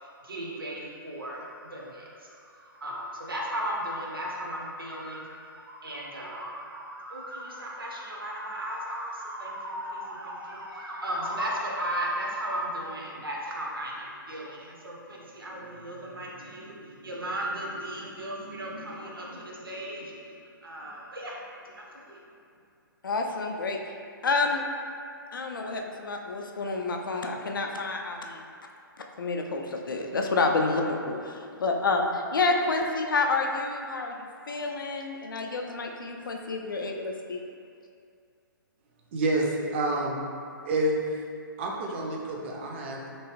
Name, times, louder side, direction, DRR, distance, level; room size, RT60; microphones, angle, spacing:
voice 1, 0.2-21.4 22.1-22.2, right 1 dB, 75° right, -3 dB, 0.7 m, -36 dB
voice 2, 23.0-23.8 24.2-24.6 25.3-28.4 29.2-34.1 34.5-37.4, left 3 dB, 65° left, 2 dB, 0.4 m, -29 dB
voice 3, 39.1-40.2 40.6-41.0 41.6-43.2, right 1 dB, 30° right, -1 dB, 0.4 m, -28 dB
3.0 x 2.7 x 2.9 m, 2.3 s
figure-of-eight pair, 125°, 12 cm